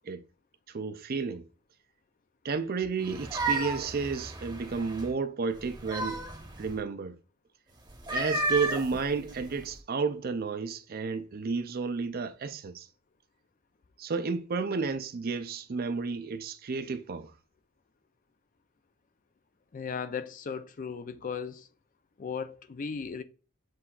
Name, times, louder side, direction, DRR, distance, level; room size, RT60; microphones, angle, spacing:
voice 1, 0.7-1.4 2.4-6.2 6.6-7.1 8.1-12.9 14.0-17.3, right 4 dB, 45° right, 0.4 m, -32 dB
sound 1, 3.0-5.1 5.6-6.8 7.9-9.7, right 2 dB, 20° right, 0.9 m, -33 dB
voice 2, 19.7-21.7 22.2-23.2, left 6 dB, 40° left, 0.4 m, -36 dB
7.5 x 2.6 x 2.3 m
head